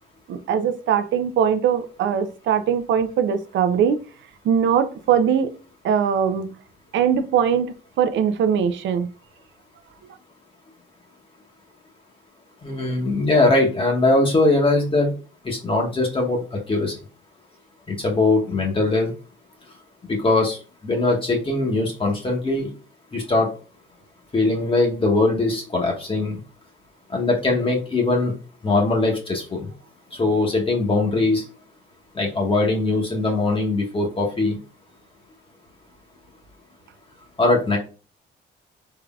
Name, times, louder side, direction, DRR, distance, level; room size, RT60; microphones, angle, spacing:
voice 1, 0.3-4.0 4.4-5.5 5.8-6.5 6.9-9.1, right 8 dB, 70° right, 0.5 m, -21 dB
voice 2, 12.6-15.1 15.4-16.4 16.7-16.9 17.9-19.1 20.1-20.6 20.8-22.7 23.1-23.5 24.3-26.4 27.1-28.3 28.6-29.7 30.2-31.4 32.1-34.6 37.4-37.8, left 2 dB, 25° left, 0.9 m, -21 dB
3.6 x 3.3 x 2.3 m
cardioid pair, 90°, 20 cm